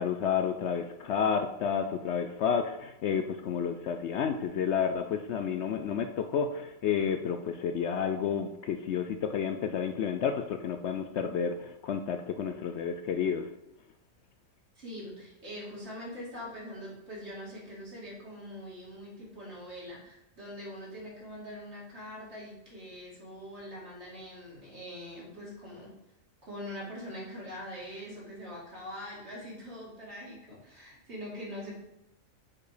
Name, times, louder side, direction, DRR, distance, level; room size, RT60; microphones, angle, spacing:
voice 1, 0.0-13.5, left 7 dB, 65° left, 7 dB, 0.8 m, -30 dB
voice 2, 14.8-25.9 26.4-31.8, equal, 55° right, -4 dB, 2.6 m, -43 dB
7.3 x 4.6 x 5.0 m, 0.84 s
omnidirectional pair, 1.4 m